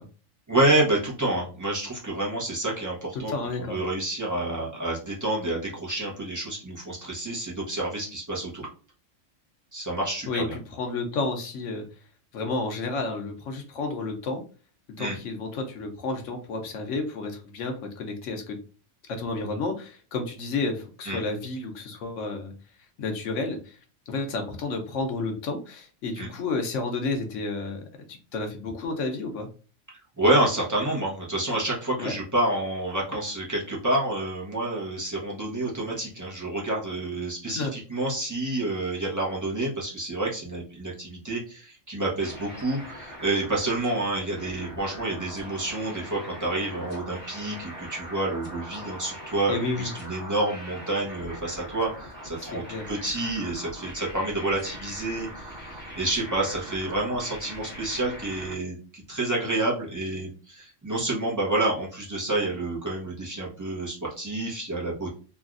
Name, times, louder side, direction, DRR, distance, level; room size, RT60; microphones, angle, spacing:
voice 1, 0.5-3.3 3.6-8.7 9.7-10.5 15.0-15.2 21.0-21.2 26.2-26.3 30.2-65.1, right 2 dB, 15° right, -4 dB, 0.7 m, -28 dB
voice 2, 3.1-3.8 10.3-11.9 12.3-14.4 15.0-18.6 19.1-22.5 23.0-23.8 24.1-27.8 28.3-29.5 32.0-32.2 37.5-37.7 49.5-49.9 52.4-52.9, left 3 dB, 70° left, 5 dB, 1.0 m, -31 dB
sound 1, 42.2-58.6, equal, 10° left, 1.0 m, -41 dB
3.3 x 2.3 x 2.4 m, 0.37 s
omnidirectional pair, 1.4 m